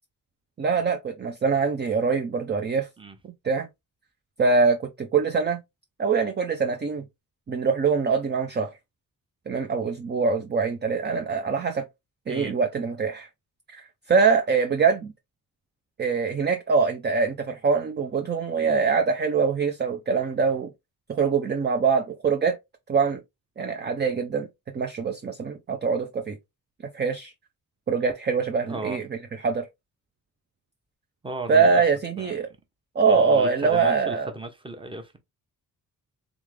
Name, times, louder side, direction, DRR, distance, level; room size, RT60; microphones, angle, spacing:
voice 1, 0.6-2.9 3.4-3.7 4.4-5.6 6.0-7.0 7.5-8.7 9.5-11.8 12.3-13.3 13.7-15.1 16.0-20.7 21.1-22.6 22.9-23.2 23.6-24.5 24.7-26.4 26.9-27.3 27.9-29.0 29.4-29.7 31.5-32.5 33.0-34.3, right 5 dB, 30° right, 0.6 m, -23 dB
voice 2, 28.6-29.0 31.2-31.8 32.2-32.5 33.0-35.2, right 2 dB, 15° right, 1.0 m, -36 dB
3.7 x 3.6 x 3.3 m
wide cardioid pair, 125°, 34 cm